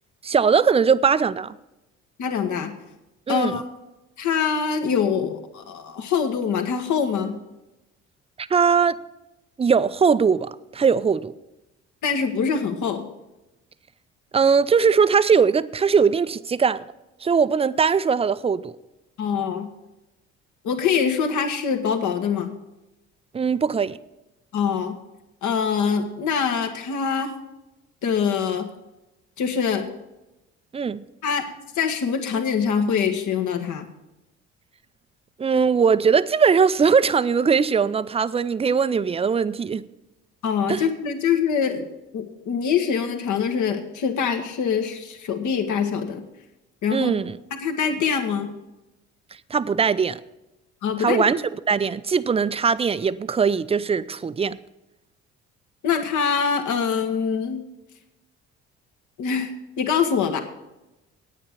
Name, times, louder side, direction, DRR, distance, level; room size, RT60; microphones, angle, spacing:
voice 1, 0.2-1.5 3.3-3.5 8.4-9.0 9.6-11.3 14.3-16.8 17.2-18.7 23.3-24.0 30.7-31.0 35.4-39.8 40.7-40.8 46.9-47.4 49.5-50.2 51.0-51.4 51.7-54.6, right 6 dB, 20° right, 0.5 m, -20 dB
voice 2, 2.2-2.8 3.3-3.6 4.2-7.4 12.0-13.1 19.2-19.7 20.6-22.5 24.5-25.0 25.4-27.3 28.0-28.7 29.4-29.9 31.2-31.5 31.7-33.9 40.4-41.9 42.1-46.2 46.8-47.1 47.6-48.5 50.8-51.2 55.8-57.6 59.2-59.5 59.8-60.4, left 6 dB, 60° left, 1.6 m, -24 dB
9.1 x 9.0 x 6.8 m
hypercardioid pair, 55°, 34 cm